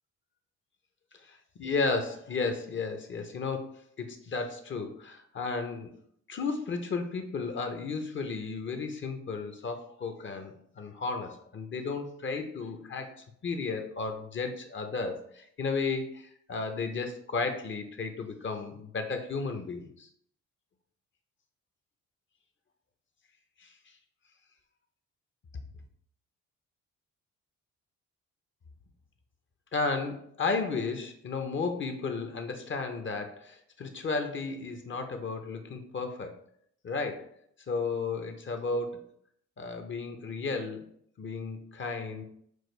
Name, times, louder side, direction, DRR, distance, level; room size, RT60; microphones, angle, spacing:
voice 1, 1.2-3.7 4.0-5.9 6.3-13.1 13.4-20.1 23.6-23.7 29.7-36.3 36.8-37.3 37.7-39.1 39.6-40.9 41.2-42.2, left 4 dB, 40° left, 6 dB, 0.7 m, -33 dB
6.1 x 2.2 x 3.2 m, 0.66 s
cardioid pair, 90°, 30 cm